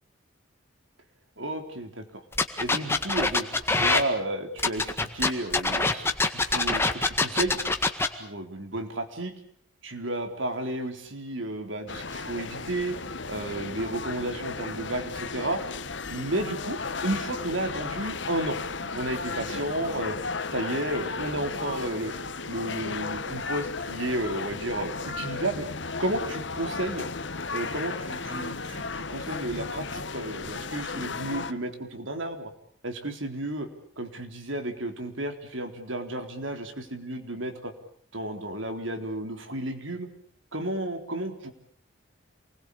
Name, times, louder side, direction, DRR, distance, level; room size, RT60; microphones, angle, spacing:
voice 1, 1.4-2.2 2.6-6.0 6.3-7.6 8.1-9.3 9.8-13.0 13.3-15.6 16.1-20.2 20.5-22.1 22.5-25.7 26.0-27.1 27.5-32.5 32.8-33.7 34.0-37.7 38.1-40.1 40.5-41.5, right 1 dB, 75° right, 6 dB, 3.8 m, -32 dB
sound 1, 2.3-4.0 4.6-8.1, left 3 dB, 10° left, 1.7 m, -24 dB
sound 2, 11.9-31.5, left 4 dB, 65° left, 1.4 m, -35 dB
27.5 x 21.0 x 8.4 m, 0.62 s
head